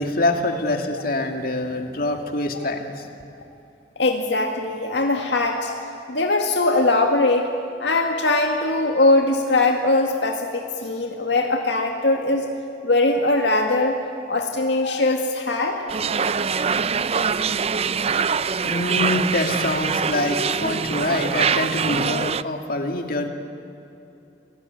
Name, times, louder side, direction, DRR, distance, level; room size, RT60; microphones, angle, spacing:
voice 1, 0.0-3.1 18.6-23.3, left 2 dB, 55° left, 4 dB, 2.6 m, -25 dB
voice 2, 4.0-7.5 7.8-12.5 12.8-14.0 14.3-15.8, left 2 dB, 70° left, 2 dB, 2.0 m, -21 dB
sound 1, 15.9-22.4, right 6 dB, 35° right, 0.5 m, -24 dB
29.0 x 19.5 x 9.5 m, 2.9 s
head